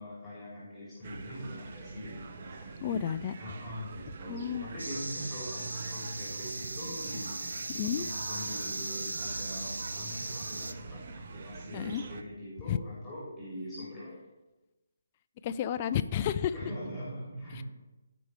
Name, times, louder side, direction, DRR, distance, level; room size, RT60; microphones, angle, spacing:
voice 1, 0.0-3.0 3.4-7.5 8.0-14.2 16.5-17.6, equal, 10° left, -8 dB, 2.9 m, -42 dB
sound 1, 1.0-12.2, right 4 dB, 45° right, 0.7 m, -45 dB
voice 2, 2.8-3.4 4.3-4.7 7.7-8.1 11.7-12.0 12.7-12.8 15.4-16.5 17.6-17.7, left 9 dB, 30° left, 13 dB, 0.4 m, -31 dB
sound 2, 4.8-10.7, right 2 dB, 80° right, 0.7 m, -38 dB
15.5 x 5.1 x 3.3 m, 1.1 s
figure-of-eight pair, 145°, 0 cm